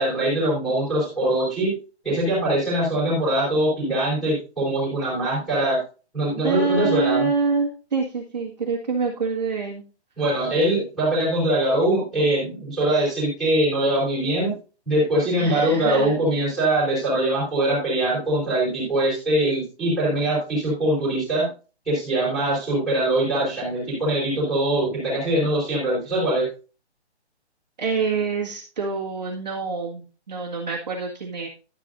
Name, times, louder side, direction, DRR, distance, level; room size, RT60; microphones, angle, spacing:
voice 1, 0.0-1.7 2.0-5.8 6.1-7.3 10.2-14.5 14.8-21.5 21.8-26.5, right 1 dB, ahead, -9 dB, 3.5 m, -22 dB
voice 2, 6.4-9.8 15.4-16.2 27.8-31.5, right 4 dB, 40° right, -2 dB, 1.8 m, -26 dB
12.0 x 8.5 x 2.6 m, 0.34 s
hypercardioid pair, 175°, 34 cm